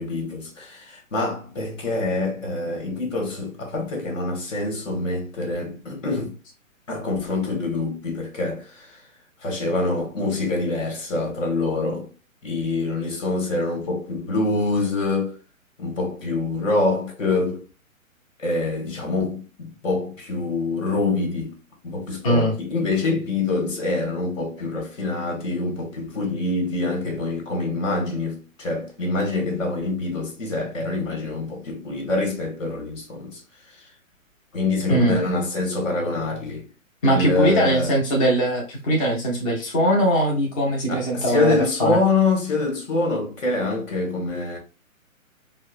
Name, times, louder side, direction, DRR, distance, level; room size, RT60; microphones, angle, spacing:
voice 1, 0.0-6.3 6.9-9.0 9.4-12.1 12.4-15.3 15.8-17.6 18.4-21.5 21.8-33.4 34.5-36.7 37.0-38.0 40.9-44.6, left 3 dB, 65° left, 1.6 m, -25 dB
voice 2, 22.2-22.6 34.9-35.2 37.0-42.0, equal, 25° left, 0.5 m, -21 dB
4.5 x 2.1 x 2.4 m
figure-of-eight pair, 135°, 41 cm